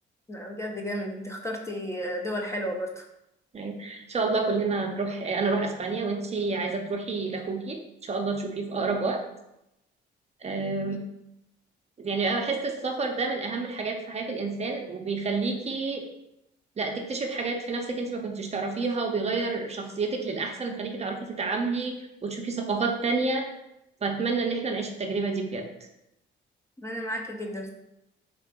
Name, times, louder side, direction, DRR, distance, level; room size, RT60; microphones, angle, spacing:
voice 1, 0.3-3.0 26.8-27.7, equal, 15° left, 1 dB, 0.5 m, -33 dB
voice 2, 3.5-9.2 10.4-11.0 12.0-16.0 16.8-23.5 24.0-25.6, right 3 dB, 35° right, 2 dB, 0.5 m, -29 dB
3.7 x 2.4 x 3.5 m, 0.87 s
cardioid pair, 90°, 20 cm